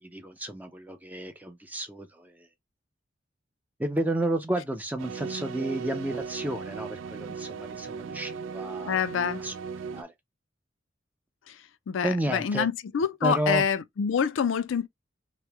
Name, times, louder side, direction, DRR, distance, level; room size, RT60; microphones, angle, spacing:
voice 1, 0.0-2.5 3.8-8.9 9.4-9.5 9.9-10.1 12.0-12.7 13.2-13.6, right 1 dB, 10° right, 0.5 m, -31 dB
sound 1, 5.0-10.0, right 5 dB, 80° right, 0.3 m, -37 dB
voice 2, 8.9-9.4 11.5-11.6 11.9-14.9, left 7 dB, 80° left, 0.4 m, -26 dB
3.0 x 2.1 x 3.2 m
head